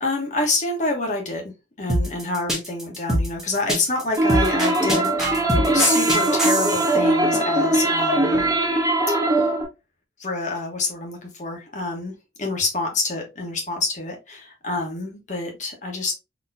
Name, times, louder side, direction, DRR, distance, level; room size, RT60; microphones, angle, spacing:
voice 1, 0.0-1.5 1.8-8.4 9.3-9.5 10.2-16.1, left 3 dB, 40° left, 1.2 m, -27 dB
sound 1, 1.9-6.9, right 1 dB, ahead, 1.0 m, -24 dB
sound 2, 4.2-9.6, right 1 dB, 20° right, 0.6 m, -21 dB
4.1 x 3.0 x 2.7 m
head